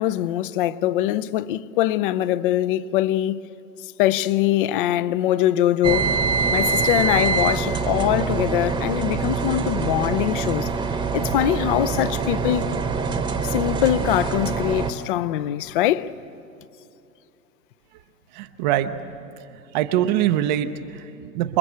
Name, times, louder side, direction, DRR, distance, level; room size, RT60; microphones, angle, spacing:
voice 1, 0.0-3.4 4.0-6.1 6.5-10.7 11.1-12.7 13.4-16.1, left 13 dB, 35° left, 0.6 m, -22 dB
sound 1, 5.8-14.9, right 4 dB, 10° right, 1.1 m, -24 dB
voice 2, 18.3-19.0 19.5-21.6, right 12 dB, 30° right, 0.7 m, -23 dB
28.0 x 23.0 x 8.1 m
hypercardioid pair, 120°, 49 cm